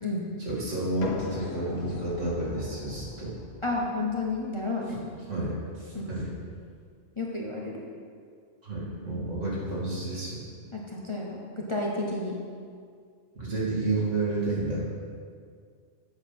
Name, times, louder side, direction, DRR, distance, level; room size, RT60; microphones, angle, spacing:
voice 1, 0.4-3.3 5.3-6.3 8.6-10.4 13.3-14.9, right 2 dB, 70° right, -6 dB, 2.8 m, -30 dB
sound 1, 1.0-6.6, left 5 dB, 90° left, 1.2 m, -41 dB
voice 2, 3.6-5.0 5.9-6.1 7.2-7.8 10.7-12.4, left 2 dB, 25° left, -3 dB, 0.9 m, -31 dB
7.9 x 6.4 x 5.9 m, 2.1 s
omnidirectional pair, 1.3 m